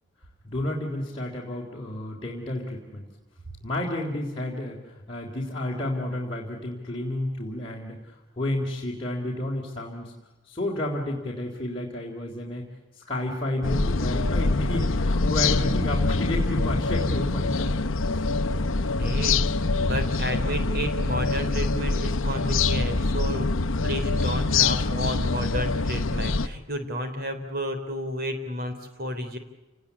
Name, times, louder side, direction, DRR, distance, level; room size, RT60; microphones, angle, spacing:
voice 1, 0.4-3.0 3.6-10.1 10.5-12.7 12.9-17.7 18.1-18.3, left 1 dB, 25° left, -4 dB, 3.6 m, -31 dB
sound 1, 13.6-26.5, left 3 dB, 70° left, 0.9 m, -25 dB
voice 2, 19.0-19.4 19.8-23.5 23.8-29.4, equal, 45° right, 7 dB, 3.6 m, -31 dB
30.0 x 19.5 x 8.4 m, 1.1 s
head